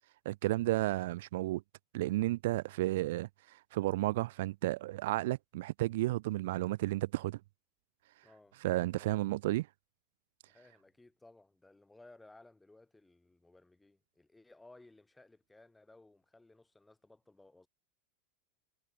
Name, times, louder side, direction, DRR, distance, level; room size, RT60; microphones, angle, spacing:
voice 1, 0.3-1.6 1.9-7.4 8.6-9.7, right 17 dB, 75° right, 0.3 m, -32 dB
voice 2, 8.2-8.6 9.0-9.1 10.5-17.7, left 2 dB, 10° left, 5.8 m, -60 dB
supercardioid pair, 120°, 0 cm